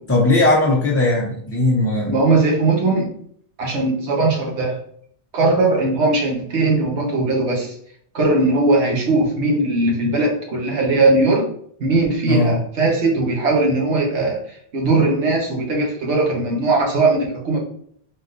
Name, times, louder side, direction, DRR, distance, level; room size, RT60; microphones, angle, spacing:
voice 1, 0.1-2.1 12.3-12.5, left 2 dB, 15° left, -5 dB, 0.6 m, -18 dB
voice 2, 2.0-3.1 3.6-4.8 5.3-7.7 8.1-11.4 11.8-17.6, right 2 dB, 90° right, -1 dB, 1.4 m, -19 dB
4.1 x 3.7 x 2.6 m, 0.63 s
omnidirectional pair, 1.1 m